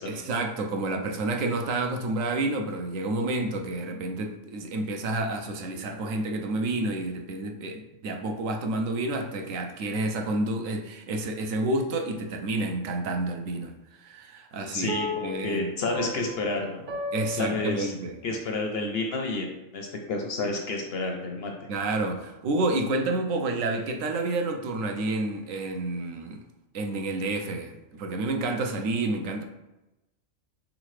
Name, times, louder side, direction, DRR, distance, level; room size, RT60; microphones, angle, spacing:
voice 1, 0.1-14.9 15.2-15.7 17.1-18.2 21.7-26.4 26.7-29.4, right 2 dB, 80° right, 3 dB, 1.0 m, -29 dB
voice 2, 14.7-16.9 17.3-17.9 18.2-19.5 19.7-21.7, left 2 dB, 60° left, 2 dB, 0.7 m, -30 dB
sound 1, 14.9-18.4, left 1 dB, 50° right, 0.6 m, -35 dB
4.1 x 3.8 x 3.1 m, 0.98 s
omnidirectional pair, 1.4 m